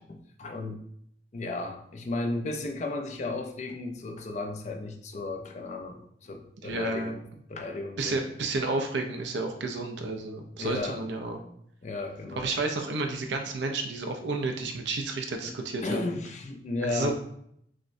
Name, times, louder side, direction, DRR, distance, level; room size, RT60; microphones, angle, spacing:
voice 1, 0.4-0.8 1.3-7.2 7.5-8.2 10.6-11.0 11.8-12.5 15.8-17.1, left 2 dB, 40° left, 3 dB, 0.5 m, -34 dB
voice 2, 6.6-7.1 8.0-11.4 12.4-16.1 16.8-17.1, right 3 dB, 80° right, 4 dB, 0.6 m, -31 dB
6.1 x 2.1 x 2.6 m, 0.70 s
head